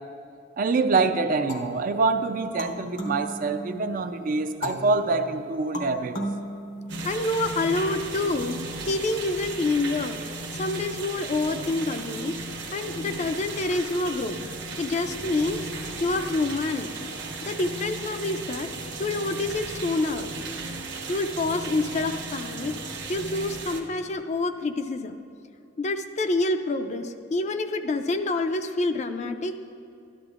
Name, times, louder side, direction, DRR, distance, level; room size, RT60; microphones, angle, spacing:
voice 1, 0.6-6.2, right 3 dB, 45° right, 9 dB, 0.4 m, -25 dB
sound 1, 1.5-4.0 4.6-7.4, equal, 75° left, 1.0 m, -36 dB
sound 2, 6.9-23.8, right 3 dB, 60° right, 1.0 m, -36 dB
voice 2, 7.0-10.2 10.6-12.4 12.7-14.4 14.8-15.7 16.0-16.9 17.4-18.7 19.0-20.3 21.1-22.8 23.1-25.2 25.8-29.6, left 2 dB, 35° left, 8 dB, 0.4 m, -27 dB
12.5 x 11.5 x 2.4 m, 2.6 s
head